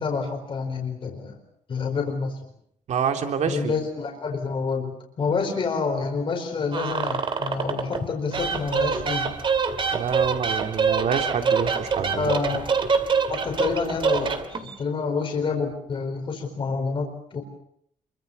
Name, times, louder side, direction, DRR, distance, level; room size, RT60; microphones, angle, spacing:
voice 1, 0.0-1.4 1.7-2.3 3.5-9.3 12.1-12.7 13.3-17.4, left 4 dB, 40° left, 2 dB, 4.5 m, -28 dB
voice 2, 2.9-3.7 9.9-12.3, right 7 dB, 60° right, 5 dB, 3.2 m, -27 dB
sound 1, 6.7-8.0 8.3-14.7, right 5 dB, 35° right, 2.4 m, -25 dB
27.5 x 24.0 x 6.7 m, 0.69 s
cardioid pair, 160°, 14 cm